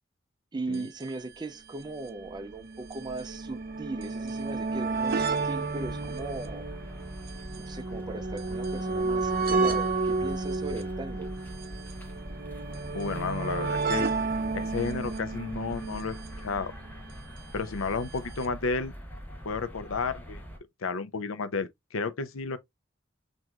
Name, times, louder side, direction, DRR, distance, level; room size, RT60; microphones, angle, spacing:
voice 1, 0.5-6.7 7.6-11.3, right 2 dB, 20° right, 0.4 m, -38 dB
sound 1, 0.7-0.8 1.0-1.1 2.0-17.2 18.2-18.3 18.4-18.5, right 3 dB, 50° right, 0.7 m, -32 dB
sound 2, 5.8-20.6, equal, 10° left, 0.9 m, -43 dB
voice 2, 12.9-14.1 14.5-16.2 16.4-16.7 17.5-18.9 19.4-20.4 20.8-22.6, left 4 dB, 80° left, 0.6 m, -32 dB
6.0 x 2.6 x 2.3 m
head